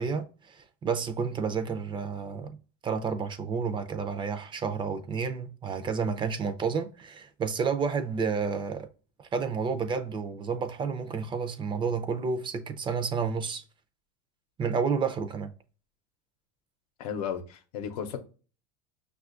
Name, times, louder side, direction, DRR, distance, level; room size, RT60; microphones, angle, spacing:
voice 1, 0.0-2.5 2.8-8.9 9.2-13.6 14.6-15.5, right 5 dB, 25° right, 0.5 m, -30 dB
voice 2, 17.0-18.2, left 8 dB, 85° left, 0.7 m, -34 dB
5.8 x 2.4 x 2.4 m
supercardioid pair, 120°, 19 cm